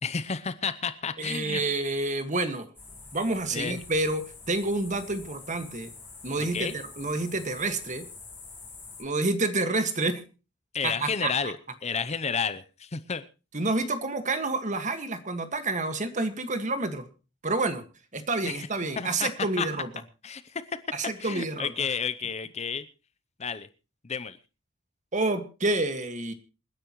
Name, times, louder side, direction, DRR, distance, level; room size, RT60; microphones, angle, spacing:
voice 1, 0.0-1.6 3.5-3.8 6.4-6.8 10.7-13.2 18.4-18.7 19.0-19.3 19.6-19.7 20.2-20.8 21.2-22.9 23.4-23.7 24.0-24.4, left 6 dB, 30° left, 14 dB, 0.6 m, -31 dB
voice 2, 1.2-2.7 3.1-5.9 6.2-8.1 9.0-10.2 10.8-11.3 13.5-17.1 17.4-17.8 18.1-19.9 20.9-21.7 25.1-26.3, right 2 dB, 35° right, 8 dB, 1.7 m, -28 dB
sound 1, 2.7-9.0, left 4 dB, 10° left, 6.2 m, -46 dB
27.5 x 10.0 x 3.1 m, 0.33 s
head